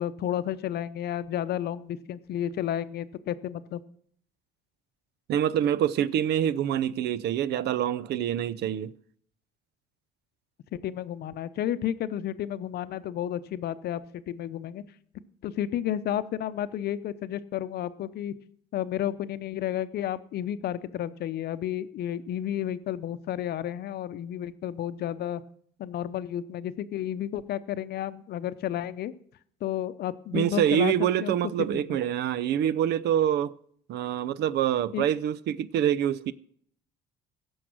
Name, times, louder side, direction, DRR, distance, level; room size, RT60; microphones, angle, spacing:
voice 1, 0.0-3.8 10.7-14.8 15.4-18.3 18.7-25.4 25.8-29.1 29.6-30.9 31.2-31.3 31.7-32.0 34.9-35.0, left 11 dB, 60° left, 0.7 m, -32 dB
voice 2, 5.3-8.9 30.3-33.5 33.9-36.3, right 10 dB, 65° right, 0.6 m, -26 dB
16.5 x 6.3 x 6.2 m
cardioid pair, 105°, 18 cm